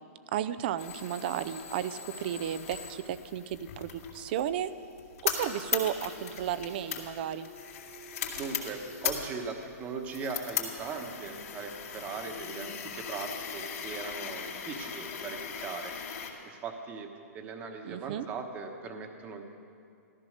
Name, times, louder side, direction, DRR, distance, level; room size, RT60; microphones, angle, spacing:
voice 1, 0.3-4.7 5.2-7.5 17.8-18.3, right 10 dB, 35° right, 13 dB, 0.5 m, -33 dB
sound 1, 0.8-16.3, left 7 dB, 65° left, 2.8 m, -38 dB
voice 2, 8.4-15.9 16.4-17.1 17.3-19.4, right 5 dB, 20° right, 4 dB, 1.2 m, -39 dB
14.5 x 14.0 x 6.6 m, 2.4 s
hypercardioid pair, 165°, 9 cm